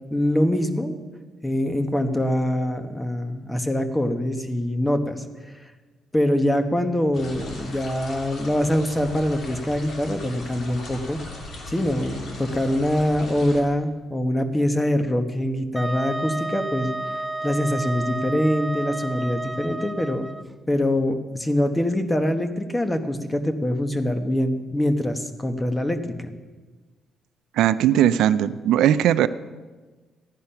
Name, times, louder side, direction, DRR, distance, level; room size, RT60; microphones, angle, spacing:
voice 1, 0.1-1.0 1.4-5.2 6.1-11.2 11.7-16.9 17.4-20.2 20.7-26.3, left 1 dB, 15° left, 7 dB, 1.4 m, -24 dB
sound 1, 7.1-13.6, left 2 dB, 65° left, 2.7 m, -38 dB
Wind instrument woodwind instrument, 15.8-20.4, right 2 dB, 10° right, 0.4 m, -31 dB
voice 2, 27.5-29.3, right 11 dB, 85° right, 13 dB, 0.5 m, -19 dB
15.0 x 10.5 x 5.8 m, 1.3 s
cardioid pair, 90°, 0 cm